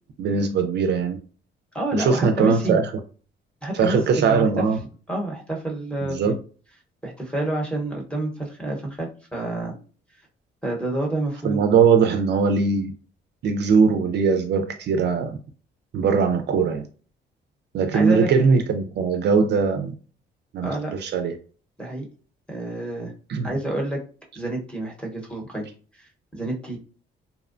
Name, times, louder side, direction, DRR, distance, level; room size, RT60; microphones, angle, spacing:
voice 1, 0.2-1.2 1.9-2.9 3.7-4.8 6.0-6.4 11.4-12.9 13.4-15.4 15.9-16.8 17.7-19.9 20.5-21.4 23.3-23.5, right 5 dB, 60° right, 0.4 m, -20 dB
voice 2, 1.7-2.8 3.6-4.6 5.1-6.4 7.0-9.8 10.6-11.6 17.9-18.3 20.6-20.9 21.8-22.0 22.5-23.1 23.4-24.0 24.4-25.7 26.0-26.8, right 1 dB, 5° left, 0.9 m, -28 dB
2.7 x 2.1 x 2.5 m
cardioid pair, 90°, 20 cm